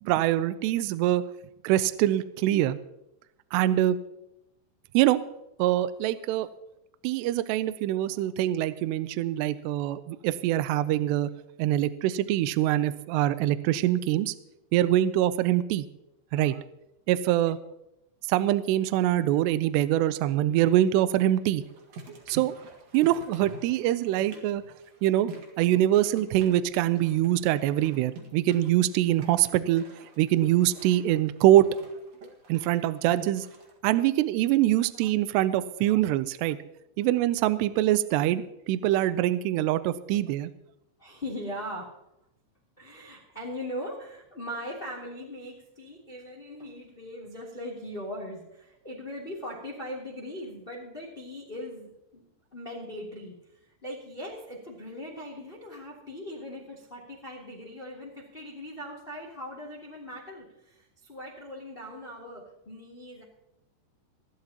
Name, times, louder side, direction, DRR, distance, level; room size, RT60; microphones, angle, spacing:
voice 1, 0.0-1.2 1.6-2.8 3.5-4.0 4.9-5.2 5.6-6.5 7.0-11.3 11.6-14.3 14.7-15.8 16.3-16.6 17.1-17.6 18.3-21.6 22.3-22.6 22.9-24.6 25.0-25.3 25.6-29.8 30.2-31.7 32.5-33.5 33.8-36.6 37.0-40.5, right 13 dB, 80° right, 13 dB, 2.5 m, -24 dB
sound 1, 21.6-33.8, right 3 dB, 50° right, 2.1 m, -47 dB
voice 2, 41.0-42.0 42.8-52.2 52.5-63.2, equal, 15° left, -2 dB, 2.3 m, -40 dB
24.5 x 11.5 x 2.9 m, 0.86 s
omnidirectional pair, 5.3 m